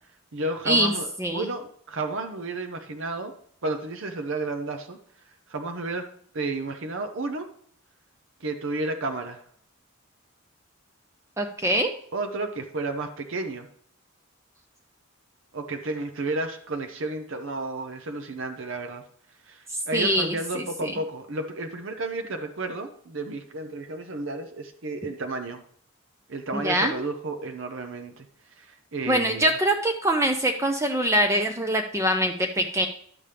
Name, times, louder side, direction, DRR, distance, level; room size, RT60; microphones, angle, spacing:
voice 1, 0.3-3.3 3.6-5.0 5.5-6.1 6.3-7.5 8.4-9.4 12.1-13.7 15.5-19.0 19.4-25.6 26.3-28.3 28.6-29.5, right 2 dB, 65° right, 6 dB, 0.8 m, -32 dB
voice 2, 11.4-11.9 19.7-20.9 26.5-26.9 29.1-32.9, right 1 dB, 15° right, 4 dB, 0.5 m, -24 dB
10.5 x 7.1 x 3.4 m, 0.62 s
head